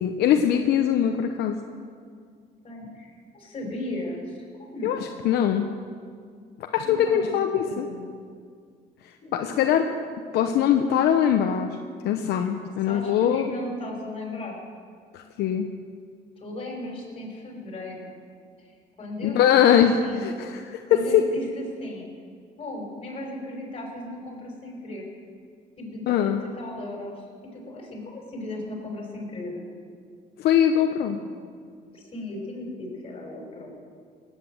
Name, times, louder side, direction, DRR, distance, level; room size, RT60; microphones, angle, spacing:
voice 1, 0.0-1.6 4.8-5.0 5.2-5.7 6.7-7.9 9.3-9.8 10.3-11.7 12.0-13.5 15.1-15.7 19.2-21.3 26.1-26.4 30.4-31.2, left 9 dB, 75° left, 5 dB, 0.9 m, -22 dB
voice 2, 2.6-4.4 4.7-5.1 6.8-7.3 7.6-8.0 9.2-9.9 12.4-12.5 12.8-14.6 16.4-18.1 18.6-19.7 20.0-20.2 20.9-22.1 22.6-25.1 25.8-27.2 27.5-29.6 31.1-31.2 31.9-33.7, left 1 dB, 35° left, 0 dB, 5.5 m, -36 dB
18.0 x 9.3 x 7.7 m, 2.1 s
cardioid pair, 110°, 17 cm